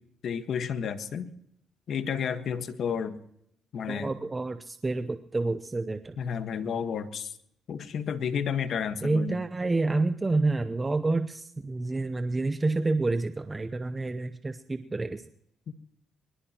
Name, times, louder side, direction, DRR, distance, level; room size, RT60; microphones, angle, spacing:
voice 1, 0.2-1.3 1.9-3.2 3.7-4.1 6.2-7.3 7.7-9.4 15.7-15.8, left 7 dB, 65° left, 9 dB, 1.5 m, -31 dB
voice 2, 3.9-6.2 9.0-15.2, right 3 dB, 20° right, 9 dB, 0.8 m, -28 dB
23.0 x 20.5 x 3.0 m, 0.73 s
cardioid pair, 90°, 0 cm